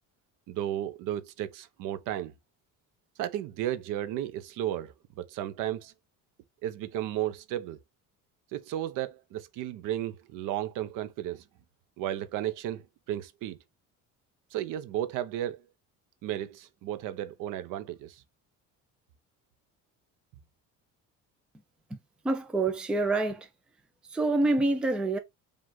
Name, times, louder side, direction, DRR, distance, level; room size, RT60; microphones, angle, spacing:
voice 1, 0.5-2.3 3.2-5.9 6.6-7.8 8.5-11.4 12.0-13.6 14.5-15.6 16.2-18.2, right 12 dB, 75° right, 0.7 m, -34 dB
voice 2, 22.2-23.5 24.1-25.2, right 2 dB, 5° right, 0.3 m, -26 dB
5.1 x 2.4 x 3.6 m
cardioid pair, 170°, 32 cm